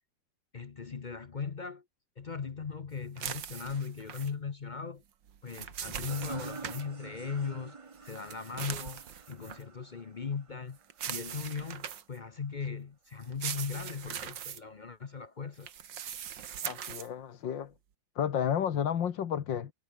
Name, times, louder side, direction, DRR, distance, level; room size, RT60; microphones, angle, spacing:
voice 1, 0.5-1.8 2.2-5.0 5.4-7.8 8.0-10.8 11.1-15.7, left 5 dB, 45° left, 0.6 m, -38 dB
sound 1, 3.2-4.3 5.3-6.8 8.0-9.6 10.9-12.2 13.2-14.6 15.6-17.1, right 9 dB, 75° right, 2.0 m, -40 dB
sound 2, 6.0-11.3, right 4 dB, 30° right, 0.5 m, -47 dB
voice 2, 16.6-17.7 18.2-19.7, left 9 dB, 80° left, 2.1 m, -31 dB
omnidirectional pair, 2.0 m